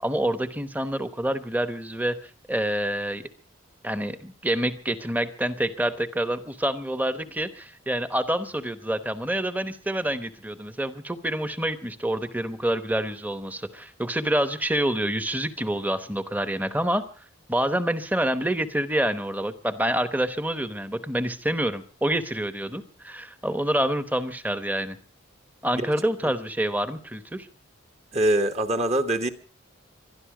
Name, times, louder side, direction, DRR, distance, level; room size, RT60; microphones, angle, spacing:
voice 1, 0.0-3.3 3.8-17.0 17.5-25.0 25.6-27.5, right 1 dB, 10° right, 0.9 m, -27 dB
voice 2, 28.1-29.3, right 1 dB, 30° right, 1.1 m, -23 dB
22.5 x 12.5 x 4.8 m
head